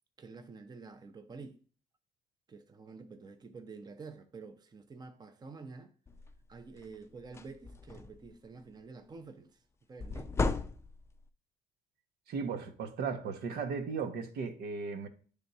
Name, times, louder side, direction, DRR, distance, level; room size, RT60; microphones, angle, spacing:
voice 1, 0.2-1.6 2.5-5.9 6.5-9.6 9.9-10.4, right 4 dB, 25° right, 0.7 m, -49 dB
sound 1, 6.1-6.3 6.8-6.9 7.2-8.3 10.0-11.2, left 3 dB, 15° left, 0.4 m, -35 dB
voice 2, 12.3-15.1, right 5 dB, 70° right, 1.0 m, -36 dB
9.2 x 3.5 x 4.1 m
cardioid pair, 110°, 17 cm